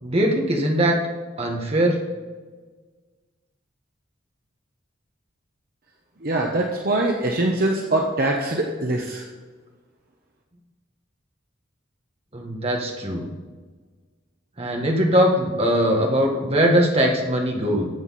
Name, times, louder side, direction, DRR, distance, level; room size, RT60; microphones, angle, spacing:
voice 1, 0.0-0.9 1.4-2.0 12.3-13.3 14.6-17.9, equal, 30° right, 1 dB, 1.7 m, -21 dB
voice 2, 6.2-9.2, right 2 dB, 50° right, 1 dB, 1.0 m, -23 dB
14.0 x 8.0 x 4.2 m, 1.4 s
head